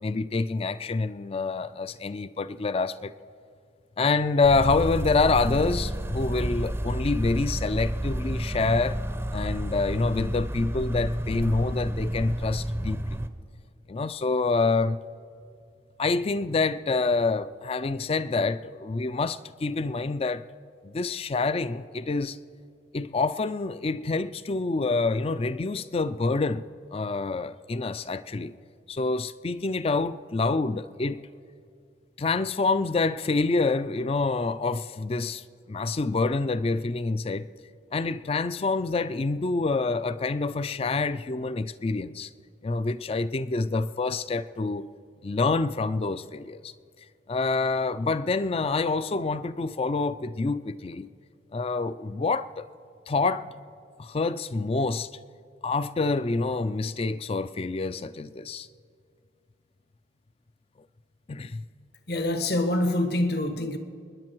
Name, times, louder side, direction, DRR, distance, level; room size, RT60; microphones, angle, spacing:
voice 1, 0.0-3.1 4.0-9.0 9.3-13.2 13.9-15.0 16.0-20.4 20.8-22.4 22.9-26.6 26.9-28.5 28.9-31.2 32.2-37.5 37.9-42.3 42.6-44.9 45.2-46.7 47.3-51.1 51.5-52.7 53.1-53.6 54.0-55.1 55.6-58.7 61.3-61.6, left 3 dB, 30° left, 15 dB, 0.4 m, -27 dB
sound 1, 4.4-13.3, right 1 dB, 15° right, 0.6 m, -30 dB
voice 2, 62.1-63.8, left 1 dB, 60° left, 8 dB, 1.2 m, -25 dB
29.5 x 10.5 x 4.6 m, 2.3 s
head